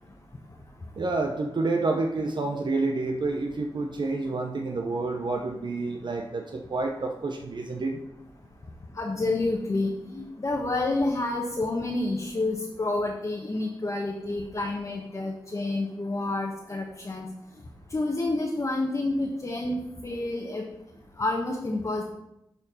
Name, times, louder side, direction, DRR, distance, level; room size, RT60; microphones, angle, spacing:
voice 1, 1.0-8.0, right 3 dB, 55° right, 3 dB, 0.7 m, -29 dB
voice 2, 8.9-17.3 17.9-20.6 21.2-22.0, left 2 dB, 35° left, -1 dB, 1.1 m, -29 dB
6.9 x 4.4 x 5.6 m, 0.84 s
cardioid pair, 70°, 9 cm